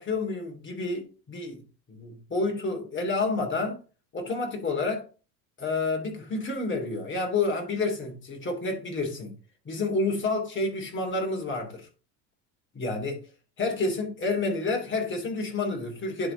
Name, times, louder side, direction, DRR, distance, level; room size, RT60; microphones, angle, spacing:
voice 1, 0.0-1.6 1.9-3.8 4.1-5.0 5.6-9.3 9.6-11.9 12.7-13.2 13.6-16.3, left 3 dB, 30° left, 3.1 m, -29 dB
10.5 x 4.1 x 3.9 m
supercardioid pair, 100°, 40 cm